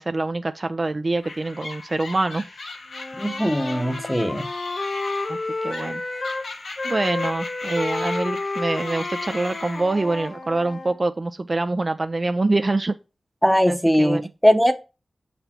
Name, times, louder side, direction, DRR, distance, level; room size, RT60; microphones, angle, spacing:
voice 1, 0.0-2.5 5.3-6.0 6.8-13.0 13.7-14.2, right 2 dB, 45° right, 0.4 m, -25 dB
sound 1, 1.2-10.3, left 3 dB, 90° left, 1.3 m, -37 dB
Wind instrument woodwind instrument, 2.9-6.5 6.8-11.0, left 2 dB, 55° left, 1.2 m, -31 dB
voice 2, 3.1-4.5 13.4-14.8, equal, 5° left, 0.8 m, -20 dB
6.7 x 4.2 x 4.3 m
cardioid pair, 50°, 0 cm